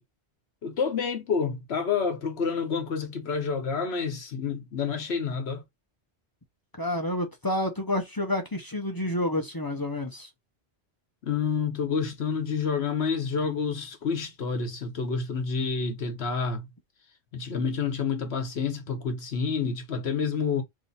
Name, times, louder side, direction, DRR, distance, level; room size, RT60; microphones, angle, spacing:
voice 1, 0.6-5.6 11.2-16.6 17.3-20.6, left 5 dB, 70° left, 1.1 m, -29 dB
voice 2, 6.8-10.3, left 1 dB, 25° left, 0.6 m, -29 dB
3.3 x 2.7 x 4.0 m
omnidirectional pair, 1.1 m